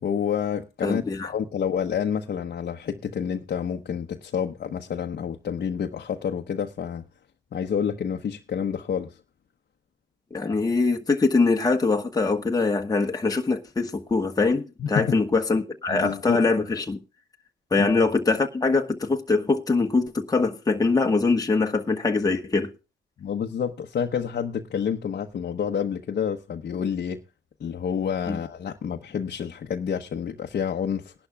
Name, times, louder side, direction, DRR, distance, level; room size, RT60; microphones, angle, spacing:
voice 1, 0.0-7.0 7.5-9.2 14.8-15.2 15.9-16.4 17.8-17.9 23.2-27.2 27.6-31.1, left 7 dB, 50° left, 1.0 m, -28 dB
voice 2, 0.8-1.3 10.3-17.0 17.7-22.7 28.3-28.4, left 3 dB, 20° left, 1.3 m, -23 dB
20.5 x 11.5 x 2.3 m
cardioid pair, 90°, 20 cm